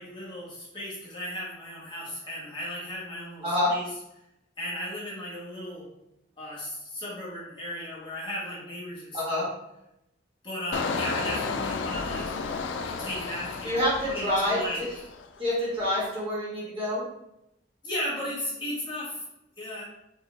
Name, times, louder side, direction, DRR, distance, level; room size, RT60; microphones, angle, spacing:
voice 1, 0.0-3.8 4.6-5.9 6.4-9.4 10.4-12.3 12.8-15.0 17.8-19.2 19.6-19.9, left 1 dB, 25° left, -7 dB, 1.5 m, -36 dB
voice 2, 9.1-9.4 13.6-14.6 15.4-17.0, left 1 dB, 30° right, -7 dB, 1.6 m, -27 dB
Engine, 10.7-15.4 15.8-16.1, left 4 dB, 75° left, 0.4 m, -33 dB
5.3 x 2.8 x 3.3 m, 0.84 s
head